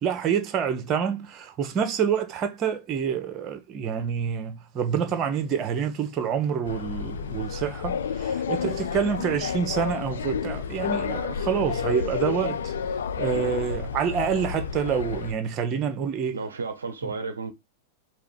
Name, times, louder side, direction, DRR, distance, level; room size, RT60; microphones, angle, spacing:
voice 1, 0.0-12.7 13.2-16.4 17.0-17.1, right 7 dB, 30° right, 0.8 m, -27 dB
sound 1, 6.6-15.3, left 7 dB, 65° left, 0.3 m, -30 dB
voice 2, 16.3-17.5, right 4 dB, 75° right, 0.5 m, -33 dB
4.7 x 2.5 x 3.6 m
figure-of-eight pair, 90°, 0 cm